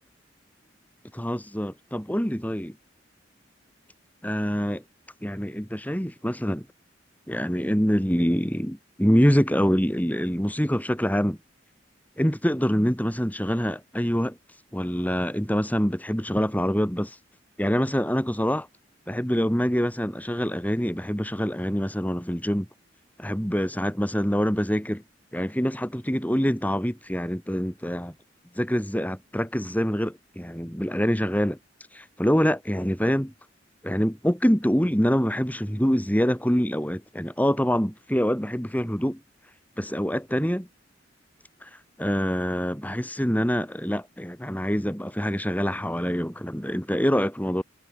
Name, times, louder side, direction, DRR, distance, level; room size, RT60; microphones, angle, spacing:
voice 1, 1.1-2.7 4.2-4.8 5.2-6.6 7.3-11.4 12.2-14.4 14.7-17.2 17.6-18.7 19.1-22.7 23.2-25.0 25.3-28.1 28.5-31.6 31.9-33.3 33.8-39.2 39.8-40.7 41.6-47.6, equal, 10° left, 4.7 m, -25 dB
head